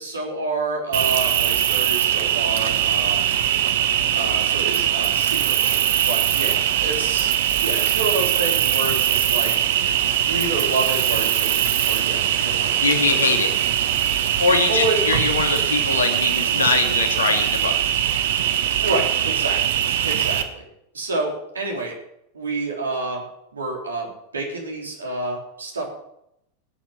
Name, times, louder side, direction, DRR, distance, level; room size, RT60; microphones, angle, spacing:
voice 1, 0.0-3.3 4.1-5.8 6.1-9.5 10.2-12.9 14.7-15.1 18.8-19.6 20.0-20.6 20.9-22.0 22.3-23.2 23.5-25.9, right 2 dB, 75° right, 0 dB, 3.9 m, -28 dB
Cricket, 0.9-20.4, right 10 dB, 55° right, 1.3 m, -21 dB
voice 2, 12.8-13.5 14.4-17.7, left 4 dB, 70° left, 5 dB, 2.4 m, -22 dB
18.0 x 9.1 x 6.0 m, 0.80 s
figure-of-eight pair, 90°, 0 cm